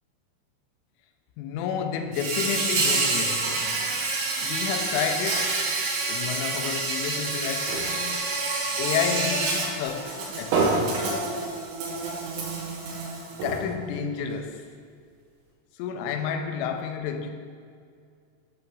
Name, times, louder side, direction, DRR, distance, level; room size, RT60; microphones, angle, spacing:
voice 1, 1.4-3.9 4.4-5.6 6.1-8.2 8.8-11.3 13.4-14.6 15.7-17.3, left 7 dB, 85° left, 3.0 m, -31 dB
Insect, 2.1-13.5, right 3 dB, 70° right, 3.0 m, -28 dB
sound 1, 7.7-9.4 9.8-12.0 12.4-12.5 12.8-12.9 13.4-14.9 15.5-15.6, right 3 dB, 90° right, 3.8 m, -30 dB
8.1 x 3.0 x 5.9 m
omnidirectional pair, 5.5 m